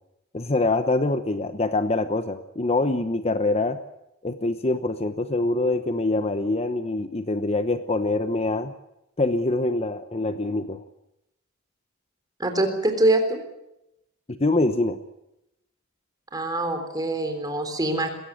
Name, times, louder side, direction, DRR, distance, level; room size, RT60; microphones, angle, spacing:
voice 1, 0.3-3.8 4.2-8.7 9.2-10.8 14.3-15.0, left 2 dB, 30° left, 10 dB, 0.9 m, -24 dB
voice 2, 12.4-13.4 16.3-18.1, right 2 dB, 20° right, 6 dB, 3.6 m, -24 dB
21.5 x 17.0 x 9.8 m, 0.87 s
head